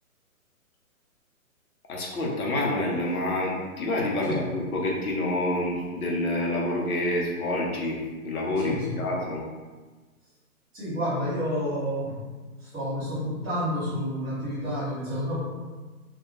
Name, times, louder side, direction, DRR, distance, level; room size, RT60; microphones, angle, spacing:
voice 1, 1.9-9.4, left 1 dB, 80° left, -2 dB, 0.9 m, -28 dB
voice 2, 8.6-9.1 10.7-12.2 12.6-15.4, equal, 10° right, -14 dB, 0.5 m, -30 dB
2.4 x 2.2 x 3.1 m, 1.3 s
hypercardioid pair, 150°, 43 cm